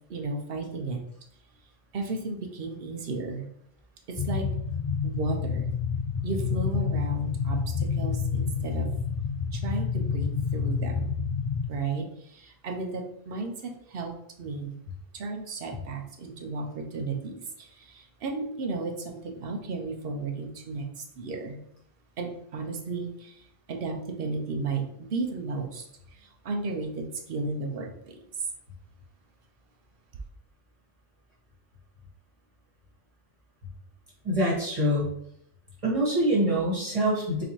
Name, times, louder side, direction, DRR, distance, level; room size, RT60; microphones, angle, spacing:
voice 1, 0.1-1.0 1.9-3.5 4.1-4.5 5.0-5.7 6.2-8.9 9.5-11.1 11.7-14.8 15.1-21.6 22.2-28.2, right 3 dB, 65° right, 4 dB, 0.9 m, -34 dB
sound 1, 4.2-11.7, left 5 dB, 45° left, 0.4 m, -29 dB
voice 2, 34.2-35.1 35.8-37.4, equal, 30° right, -6 dB, 1.3 m, -25 dB
4.1 x 3.8 x 3.0 m, 0.70 s
omnidirectional pair, 1.1 m